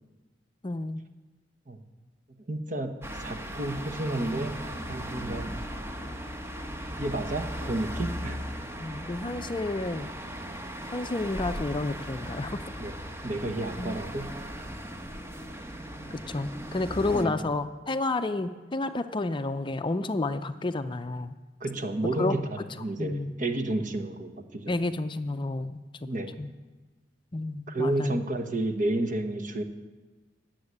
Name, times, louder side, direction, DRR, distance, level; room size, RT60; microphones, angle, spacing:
voice 1, 0.6-1.0 8.8-10.1 10.9-12.6 13.8-14.0 16.1-21.4 22.2-22.4 23.0-23.3 24.7-26.1 26.4-26.5 27.3-28.2, left 2 dB, 25° left, 10 dB, 0.5 m, -30 dB
voice 2, 2.5-5.5 7.0-8.5 12.8-13.0 13.2-14.3 17.1-17.3 21.6-24.7 26.0-26.3 27.7-29.6, right 1 dB, 45° right, 7 dB, 1.2 m, -31 dB
sound 1, 3.0-17.2, equal, 15° right, 1.1 m, -37 dB
13.0 x 8.0 x 9.8 m, 1.3 s
head